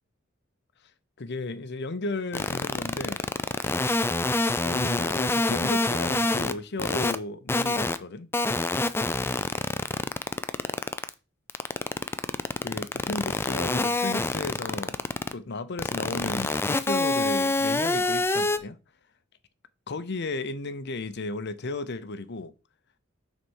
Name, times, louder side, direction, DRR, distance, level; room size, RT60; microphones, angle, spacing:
voice 1, 1.2-3.2 4.6-8.3 12.6-15.0 15.3-18.8 19.9-22.5, left 3 dB, 55° left, 0.8 m, -34 dB
sound 1, 2.3-6.5 6.8-7.2 7.5-8.0 8.3-11.1 11.5-15.3 15.8-18.6, left 2 dB, 10° left, 0.4 m, -26 dB
6.3 x 4.2 x 6.3 m
head